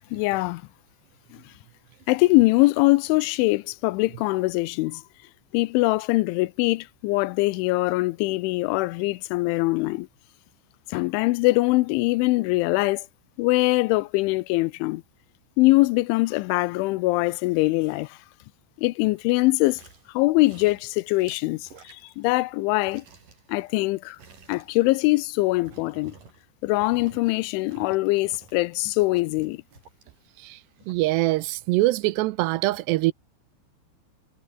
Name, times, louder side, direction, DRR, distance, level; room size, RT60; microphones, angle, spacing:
voice 1, 0.1-0.6 2.1-5.0 5.5-10.1 10.9-13.1 13.4-15.0 15.6-18.2 18.8-19.8 20.1-23.0 23.5-24.2 24.5-26.1 26.6-29.6, left 21 dB, 85° left, 3.0 m, -22 dB
sound 1, 19.2-20.1 20.4-22.5 22.8-26.5 26.8-27.3 27.6-30.0 30.5-30.6, right 5 dB, 45° right, 6.3 m, -51 dB
voice 2, 30.9-33.1, right 19 dB, 80° right, 2.5 m, -23 dB
omnidirectional pair, 5.5 m